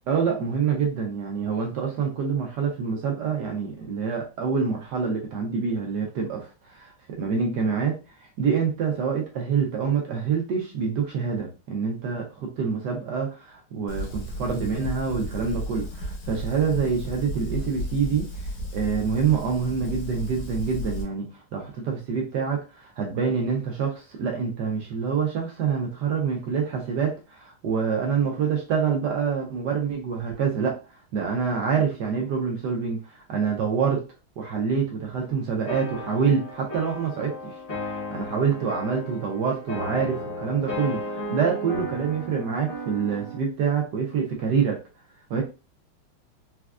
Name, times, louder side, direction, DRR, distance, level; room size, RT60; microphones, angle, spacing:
voice 1, 0.1-8.0 8.4-18.3 18.7-21.3 21.5-30.8 31.1-34.0 34.4-37.5 37.9-44.8 45.3-45.4, right 6 dB, 70° right, 1 dB, 1.0 m, -26 dB
Fire, 13.9-21.0, left 1 dB, 60° left, 1.5 m, -34 dB
sound 1, 35.7-43.5, equal, 35° left, 0.6 m, -35 dB
4.2 x 2.3 x 2.3 m, 0.31 s
omnidirectional pair, 2.4 m